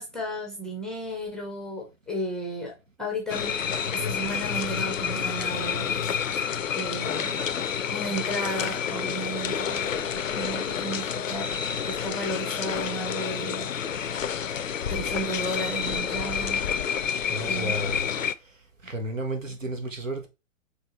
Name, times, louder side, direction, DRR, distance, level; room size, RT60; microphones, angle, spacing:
voice 1, 0.0-2.7 3.0-3.6 3.9-5.9 6.7-7.4 7.9-11.5 11.8-13.7 14.9-16.6 17.5-17.8, right 1 dB, ahead, 0.6 m, -34 dB
sound 1, 3.3-18.3, left 7 dB, 85° left, 0.5 m, -29 dB
voice 2, 17.3-18.1 18.8-20.3, right 1 dB, 80° right, 1.3 m, -32 dB
4.4 x 3.3 x 3.0 m
figure-of-eight pair, 120°, 38 cm